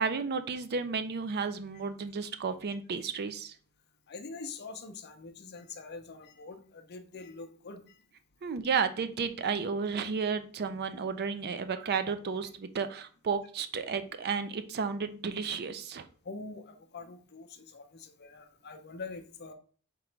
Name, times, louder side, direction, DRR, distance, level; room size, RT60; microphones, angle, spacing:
voice 1, 0.0-3.5 8.4-16.0, right 5 dB, 45° right, 11 dB, 0.4 m, -32 dB
voice 2, 4.1-8.0 16.2-19.5, left 4 dB, 45° left, 7 dB, 0.6 m, -44 dB
3.7 x 3.0 x 4.5 m, 0.42 s
head